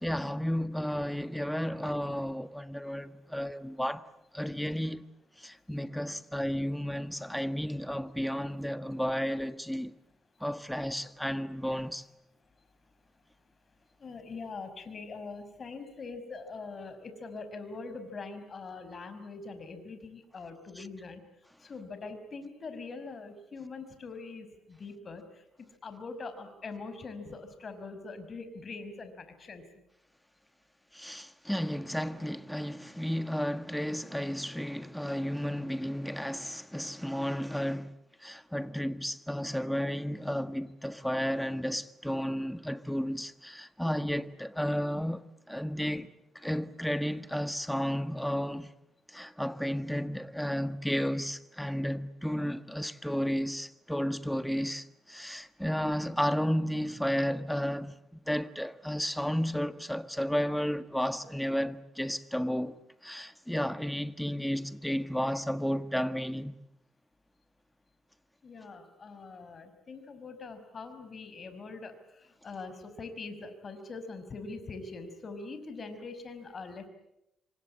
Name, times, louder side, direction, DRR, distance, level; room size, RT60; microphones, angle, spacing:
voice 1, 0.0-4.0 4.3-5.0 5.4-9.9 10.4-12.0 20.8-20.9 30.9-37.9 38.2-46.1 46.4-48.7 49.1-58.0 58.2-62.8 63.0-66.5, equal, ahead, 1.5 m, -32 dB
voice 2, 14.0-21.2 21.6-25.4 25.8-29.6 68.4-76.9, left 4 dB, 40° left, 5.3 m, -43 dB
27.5 x 24.5 x 8.8 m
cardioid pair, 90°, 0 cm